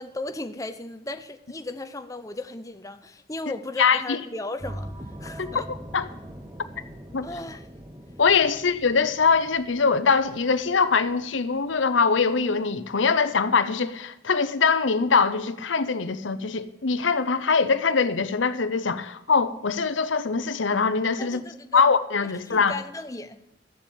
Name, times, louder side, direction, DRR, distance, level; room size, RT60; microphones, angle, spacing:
voice 1, 0.0-4.9 5.2-5.7 6.7-6.9 7.2-7.6 8.5-8.6 21.2-21.8 22.4-23.4, left 2 dB, 15° left, 0.7 m, -36 dB
voice 2, 3.8-4.2 5.9-6.0 7.1-7.3 8.2-21.4 21.7-22.7, left 5 dB, 80° left, 0.8 m, -22 dB
sound 1, 4.6-12.9, equal, 20° right, 1.0 m, -43 dB
13.5 x 7.3 x 8.8 m
head